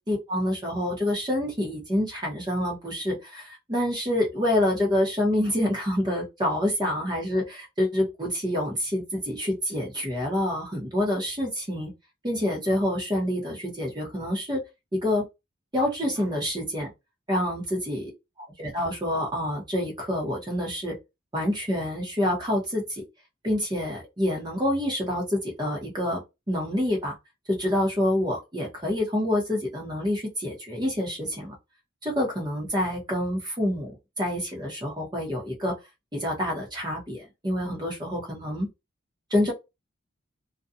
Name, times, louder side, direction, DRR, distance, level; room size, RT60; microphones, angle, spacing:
voice 1, 0.1-11.9 12.2-14.6 14.9-15.2 15.7-16.9 17.3-18.1 18.6-21.0 21.3-23.0 23.4-26.2 26.5-27.2 27.5-31.5 32.0-35.7 36.1-38.7 39.3-39.5, left 1 dB, 20° right, 0.9 m, -27 dB
2.4 x 2.3 x 2.6 m
head